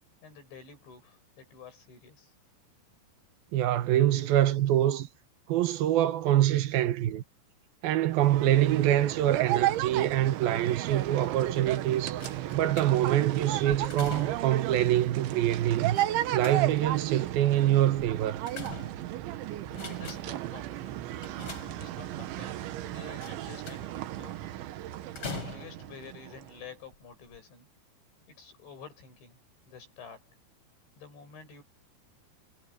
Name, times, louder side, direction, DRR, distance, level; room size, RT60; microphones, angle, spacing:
voice 1, 0.2-2.3 19.8-21.0 21.7-24.4 25.3-27.7 28.3-29.4 29.7-30.3 31.0-31.6, left 5 dB, 80° left, 9.9 m, -49 dB
voice 2, 3.5-5.1 5.5-7.2 7.8-12.2 12.5-16.0 16.3-18.4, right 12 dB, 75° right, 2.4 m, -25 dB
sound 1, 8.1-26.6, right 14 dB, 90° right, 3.7 m, -34 dB
sound 2, 12.2-13.2 13.7-14.6 16.0-17.0 18.0-19.3 19.7-20.5 21.2-22.2 23.2-24.0 25.2-26.0 26.8-26.9 27.3-27.4, left 3 dB, 30° left, 5.0 m, -43 dB
omnidirectional pair, 5.2 m